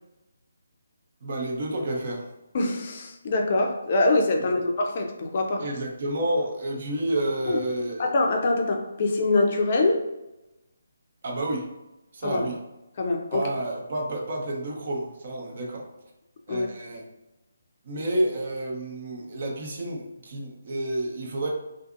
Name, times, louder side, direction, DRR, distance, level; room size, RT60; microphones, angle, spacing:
voice 1, 1.2-2.3 4.5-4.6 5.6-8.1 11.2-11.7 12.1-12.6 13.3-15.9 16.5-17.0 17.8-21.5, right 1 dB, 45° right, 0 dB, 0.7 m, -30 dB
voice 2, 2.5-5.6 7.5-7.6 8.0-10.0 12.2-12.5 13.0-13.5 16.5-16.7, left 2 dB, 40° left, 3 dB, 0.4 m, -24 dB
2.5 x 2.4 x 2.5 m, 0.97 s
figure-of-eight pair, 150°, 0 cm